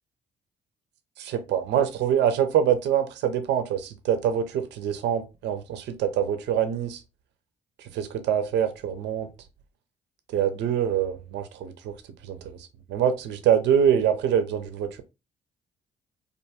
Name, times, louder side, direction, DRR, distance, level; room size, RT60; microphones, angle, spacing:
voice 1, 1.2-7.0 7.8-9.3 10.3-11.9 12.2-15.0, right 9 dB, 70° right, 0.5 m, -25 dB
2.4 x 2.3 x 2.7 m
supercardioid pair, 60°, 19 cm